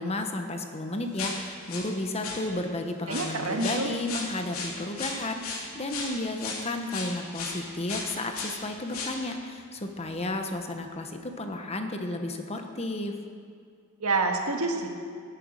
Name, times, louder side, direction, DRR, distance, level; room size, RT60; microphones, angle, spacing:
voice 1, 0.0-13.1, left 2 dB, 30° left, 5 dB, 1.1 m, -33 dB
sound 1, 1.2-1.9 2.2-2.4 3.1-7.6 7.9-8.6 8.9-9.2 9.6-9.8 10.1-10.2 11.0-11.1, left 4 dB, 80° left, 3.0 m, -35 dB
voice 2, 3.1-3.9 14.0-14.9, right 3 dB, 90° right, 3 dB, 1.8 m, -27 dB
19.0 x 9.3 x 6.5 m, 2.2 s
head